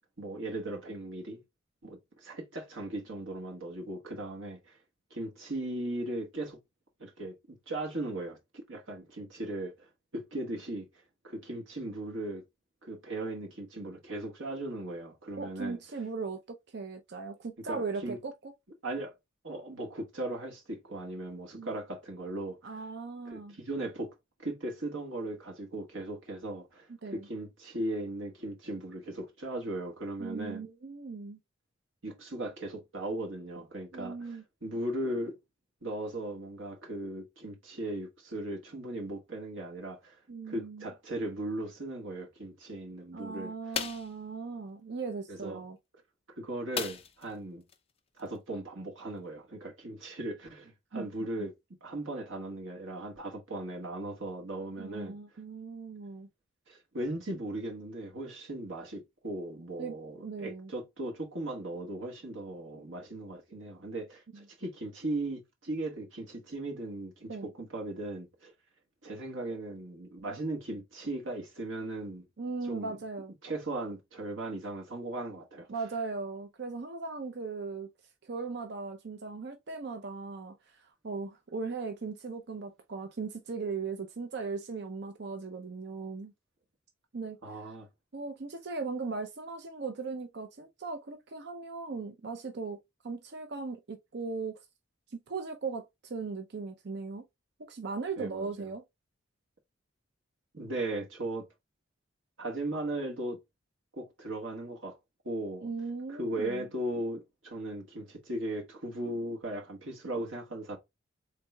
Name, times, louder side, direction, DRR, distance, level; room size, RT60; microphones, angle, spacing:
voice 1, 0.2-1.4 1.8-4.8 5.1-6.6 7.0-10.9 11.2-12.4 12.8-15.8 17.6-18.2 18.8-19.1 19.4-22.8 23.2-30.6 32.0-35.4 35.8-40.2 40.5-43.8 45.3-45.6 46.4-47.6 48.2-51.5 51.8-55.1 56.7-68.5 69.0-72.2 72.7-73.0 73.4-75.7 87.4-87.9 98.2-98.5 100.5-101.4 102.4-103.4 103.9-105.0 105.2-105.7 106.1-110.8, right 1 dB, 75° right, 1.6 m, -38 dB
voice 2, 15.4-18.5 21.6-21.7 22.6-23.6 27.0-27.3 30.2-31.4 33.9-34.4 40.3-40.9 43.1-45.8 50.9-51.1 54.8-56.3 59.8-60.7 64.3-64.4 67.3-67.5 72.4-73.3 75.7-77.9 78.2-86.3 87.1-87.4 88.1-94.6 95.3-97.2 97.7-98.8 105.6-106.7, right 4 dB, 55° right, 0.5 m, -38 dB
sound 1, 43.7-44.1 46.7-47.3 47.7-47.8 48.2-48.4, left 7 dB, 30° left, 0.4 m, -35 dB
4.6 x 3.6 x 2.2 m
head